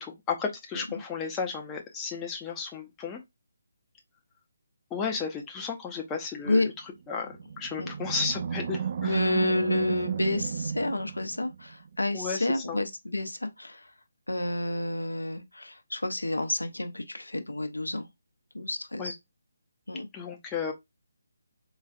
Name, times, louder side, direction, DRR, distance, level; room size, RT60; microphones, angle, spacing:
voice 1, 0.0-3.2 4.9-6.7 7.1-9.2 12.1-12.8 19.0-19.1 20.1-20.7, left 5 dB, 15° left, 0.5 m, -33 dB
Animal, 7.2-11.7, right 7 dB, 45° right, 0.3 m, -32 dB
voice 2, 9.0-13.8 14.3-18.1 18.5-19.2 19.9-20.1, left 2 dB, 85° left, 0.6 m, -29 dB
3.9 x 2.4 x 2.3 m
figure-of-eight pair, 145°, 0 cm